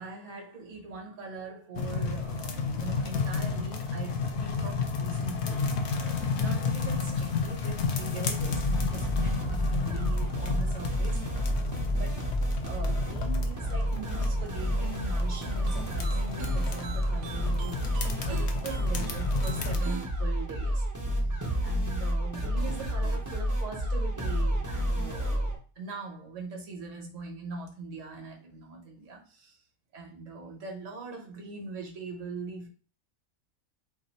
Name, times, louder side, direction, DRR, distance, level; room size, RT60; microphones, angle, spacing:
voice 1, 0.0-11.2 11.9-12.2 12.6-17.8 18.2-20.8 21.6-29.6 29.9-32.7, right 3 dB, 65° right, 1.4 m, -41 dB
sound 1, 1.7-19.8, left 5 dB, 60° left, 0.8 m, -32 dB
sound 2, 8.4-25.5, equal, 20° right, 0.6 m, -30 dB
sound 3, 15.3-20.1, right 6 dB, 90° right, 1.1 m, -46 dB
3.1 x 2.6 x 4.1 m
omnidirectional pair, 1.5 m